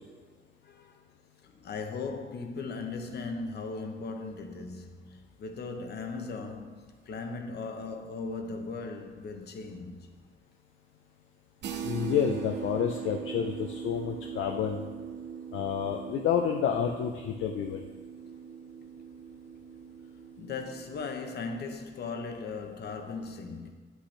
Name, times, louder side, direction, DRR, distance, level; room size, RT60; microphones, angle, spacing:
voice 1, 0.6-1.0 1.4-10.1 20.4-23.7, left 4 dB, 55° left, 0.8 m, -38 dB
sound 1, 11.6-21.2, right 7 dB, 65° right, 0.6 m, -41 dB
voice 2, 11.8-14.9 15.5-17.8, left 8 dB, 80° left, 0.5 m, -29 dB
8.1 x 6.3 x 3.2 m
cardioid pair, 90°, 20 cm